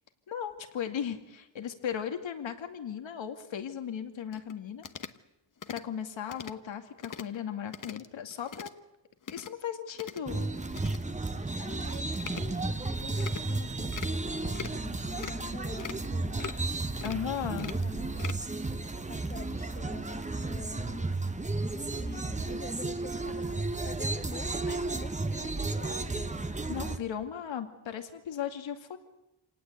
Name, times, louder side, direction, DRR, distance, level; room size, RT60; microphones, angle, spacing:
voice 1, 0.3-4.8 5.7-8.7 9.3-10.5 17.0-17.7 26.7-29.0, left 8 dB, 80° left, 6 dB, 2.5 m, -36 dB
sound 1, 4.3-4.5 4.8-5.2 5.6-5.8 6.3-6.5 7.0-7.4 7.7-8.1 8.3-8.7 9.2-9.5 9.9-10.2 10.7-11.0 11.4-11.5 12.1-12.4 13.2-13.4 13.9-14.2 14.5-14.9 15.2-15.5 15.8-16.1 16.4-16.7 17.0-17.2 17.6-18.5 18.8-18.9, left 7 dB, 45° left, 1.1 m, -41 dB
sound 2, 10.3-27.0, right 3 dB, 15° right, 1.2 m, -33 dB
voice 2, 11.6-16.5 17.3-18.3 19.1-21.0 21.7-23.4 23.8-26.4, left 3 dB, 20° left, 9 dB, 1.5 m, -45 dB
27.0 x 19.0 x 8.2 m, 0.91 s
wide cardioid pair, 110°, 45 cm